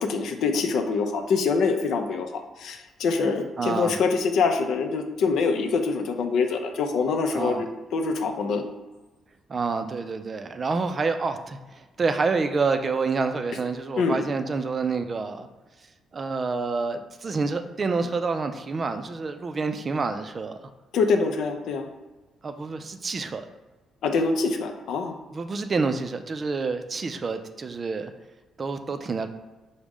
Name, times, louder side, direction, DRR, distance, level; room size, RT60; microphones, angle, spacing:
voice 1, 0.0-2.3 2.6-8.6 14.0-14.2 20.9-21.9 24.0-25.1, left 4 dB, 75° left, 5 dB, 0.4 m, -25 dB
voice 2, 3.6-4.0 7.3-7.7 9.5-15.5 16.1-20.6 22.4-23.4 25.3-28.1 28.6-29.3, right 4 dB, 40° right, 8 dB, 0.3 m, -28 dB
4.7 x 2.1 x 3.5 m, 1.2 s
cardioid pair, 90°, 0 cm